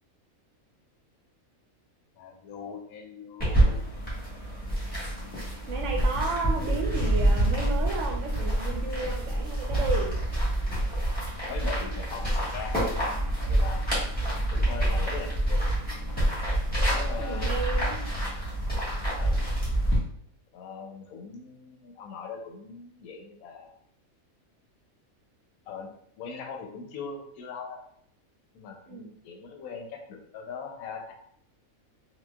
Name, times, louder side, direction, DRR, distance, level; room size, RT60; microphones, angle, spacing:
voice 1, 2.2-3.8 11.5-13.9 14.5-15.7 16.7-17.8 19.2-19.4 20.5-23.7 25.7-25.9 26.2-27.8 28.5-31.1, left 5 dB, 90° left, 3 dB, 1.1 m, -40 dB
sound 1, 3.4-20.0, right 1 dB, 5° left, 1.1 m, -27 dB
voice 2, 5.7-10.1 17.2-18.1 28.9-29.1, right 4 dB, 65° right, 2 dB, 0.8 m, -33 dB
3.9 x 2.5 x 2.2 m, 0.68 s
omnidirectional pair, 1.5 m